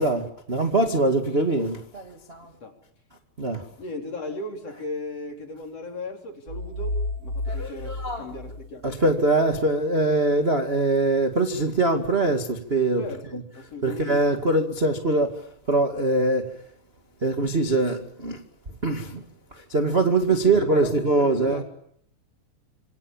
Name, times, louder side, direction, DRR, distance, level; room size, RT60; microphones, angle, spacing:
voice 1, 0.0-2.5 3.4-3.6 7.5-8.3 8.8-13.0 13.8-16.5 17.2-18.4 18.8-19.2 19.5-21.6, right 2 dB, 25° right, 1.2 m, -23 dB
voice 2, 2.4-2.8 3.8-9.1 13.0-14.2 20.3-20.9 21.2-21.6, left 2 dB, 35° left, 4.7 m, -37 dB
sound 1, 6.5-9.2, left 2 dB, 70° right, 4.6 m, -32 dB
27.5 x 25.5 x 7.3 m
omnidirectional pair, 4.8 m